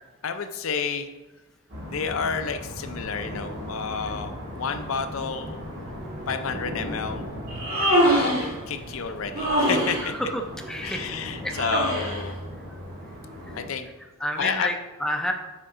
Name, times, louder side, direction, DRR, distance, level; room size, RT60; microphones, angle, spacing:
voice 1, 0.2-1.1 1.8-5.6 6.3-7.2 8.0-10.1 10.8-12.4 13.5-13.9 14.4-14.8, left 6 dB, 70° left, 8 dB, 0.5 m, -30 dB
sound 1, 1.7-13.6, equal, 55° right, 1.6 m, -37 dB
Human voice, 7.5-8.5 9.3-10.1 11.5-12.2, equal, 75° right, 1.9 m, -23 dB
voice 2, 10.0-11.1 11.4-11.5 13.4-13.5 14.2-15.3, equal, 5° left, 3 dB, 0.4 m, -29 dB
6.4 x 4.5 x 3.8 m, 1.1 s
head